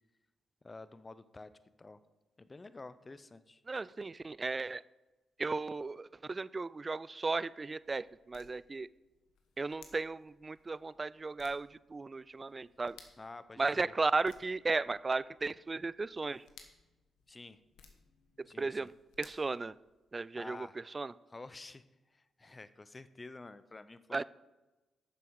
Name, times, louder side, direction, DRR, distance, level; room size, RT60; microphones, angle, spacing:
voice 1, 0.6-1.5 1.8-2.0 2.4-3.6 13.2-13.9 17.3-17.6 18.5-18.9 20.3-20.8 21.3-21.8 22.1-24.2, left 3 dB, 30° left, 14 dB, 0.6 m, -50 dB
voice 2, 3.7-4.8 5.4-8.9 9.6-13.0 13.6-16.4 18.4-18.9 19.2-19.8 20.1-21.1 24.1-24.2, right 3 dB, 35° right, 19 dB, 0.3 m, -35 dB
sound 1, 7.2-20.3, left 6 dB, 85° left, 1.2 m, -63 dB
10.5 x 7.1 x 4.7 m, 1.1 s
supercardioid pair, 60°, 0 cm